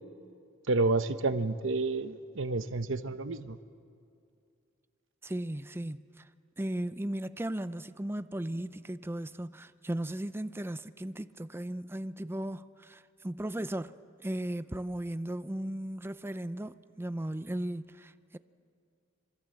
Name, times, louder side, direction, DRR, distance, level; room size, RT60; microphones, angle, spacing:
voice 1, 0.7-3.6, right 3 dB, 70° right, 1.0 m, -30 dB
voice 2, 5.2-6.2 6.6-18.4, right 1 dB, 10° right, 0.5 m, -36 dB
26.5 x 23.0 x 7.8 m
head